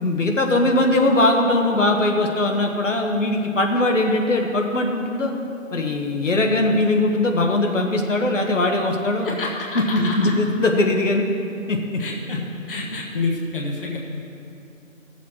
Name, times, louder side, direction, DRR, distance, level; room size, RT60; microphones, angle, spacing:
voice 1, 0.0-5.3 5.7-9.4 9.9-11.2 11.7-12.0, left 2 dB, 65° left, 2 dB, 1.3 m, -20 dB
voice 2, 9.2-10.3 12.0-12.4 12.7-14.0, left 3 dB, 40° left, -1 dB, 1.1 m, -28 dB
14.5 x 7.3 x 4.3 m, 2.6 s
figure-of-eight pair, 165°, 40 cm